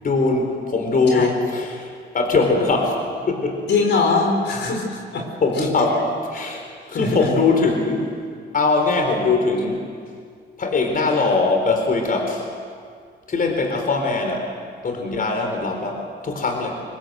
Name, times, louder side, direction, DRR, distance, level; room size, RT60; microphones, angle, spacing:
voice 1, 0.0-3.7 5.4-8.1 8.5-9.9 10.6-12.5 13.3-14.5 14.8-16.8, left 3 dB, 45° left, 3 dB, 4.2 m, -21 dB
voice 2, 3.7-5.3 6.9-7.3, left 4 dB, 65° left, 2 dB, 4.3 m, -21 dB
24.0 x 20.0 x 8.0 m, 2.1 s
cardioid pair, 90°, 20 cm